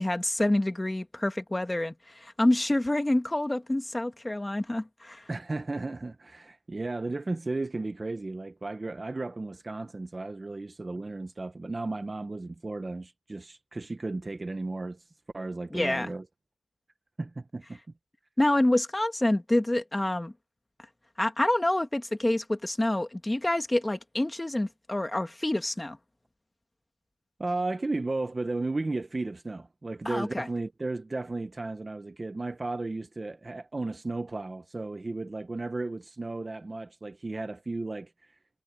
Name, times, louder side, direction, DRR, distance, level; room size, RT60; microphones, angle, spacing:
voice 1, 0.0-5.2 15.7-16.1 18.4-20.3 21.2-26.0 30.1-30.5, left 1 dB, 10° left, 1.6 m, -27 dB
voice 2, 5.3-15.1 15.3-16.3 17.2-17.8 27.4-38.4, right 2 dB, 20° right, 0.6 m, -34 dB
wide cardioid pair, 165°, 0 cm